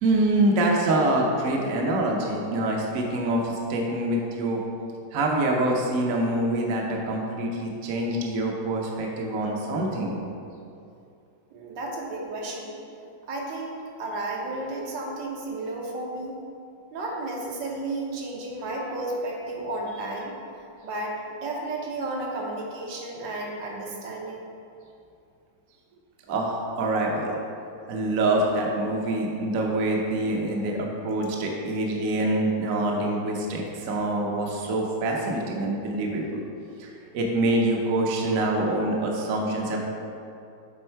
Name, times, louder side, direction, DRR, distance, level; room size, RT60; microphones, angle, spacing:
voice 1, 0.0-4.6 5.1-10.2 26.3-27.3 27.9-36.4 36.8-39.8, right 1 dB, 60° right, 0 dB, 1.0 m, -25 dB
voice 2, 11.5-12.7 13.3-16.4 16.9-20.3 20.8-24.4, right 2 dB, 75° right, -2 dB, 1.6 m, -33 dB
8.0 x 3.5 x 4.5 m, 2.6 s
omnidirectional pair, 2.0 m